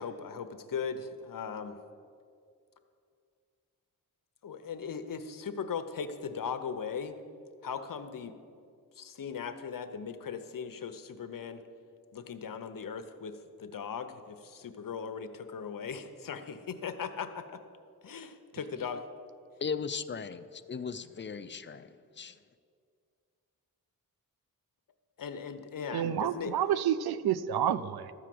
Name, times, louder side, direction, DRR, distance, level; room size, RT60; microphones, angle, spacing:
voice 1, 0.0-1.8 4.4-7.1 7.6-8.4 8.9-11.6 12.1-13.3 13.6-17.6 18.0-19.0 25.2-26.5, left 6 dB, 60° left, 0.8 m, -38 dB
voice 2, 19.6-22.4, left 5 dB, 30° left, 0.4 m, -37 dB
voice 3, 25.9-28.1, right 10 dB, 85° right, 0.5 m, -29 dB
13.0 x 4.9 x 7.6 m
cardioid pair, 75°, 37 cm